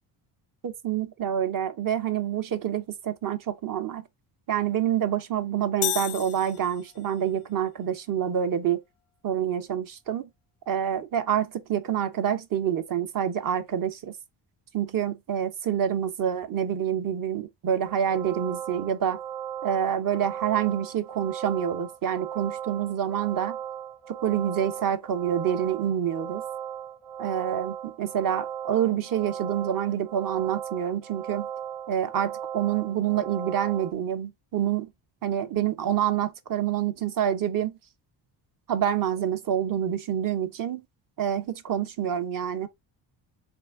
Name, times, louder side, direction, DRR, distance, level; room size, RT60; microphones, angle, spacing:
voice 1, 0.6-4.0 4.5-8.8 9.2-10.3 10.7-14.1 14.7-19.2 19.6-23.6 24.1-26.4 27.2-31.5 31.9-34.9 35.2-37.8 38.7-40.8 41.2-42.7, right 9 dB, 45° right, 0.7 m, -27 dB
sound 1, 5.8-7.2, left 15 dB, 80° left, 0.5 m, -32 dB
sound 2, 17.9-33.9, right 9 dB, 80° right, 0.9 m, -37 dB
4.4 x 2.5 x 3.6 m
cardioid pair, 105°, 48 cm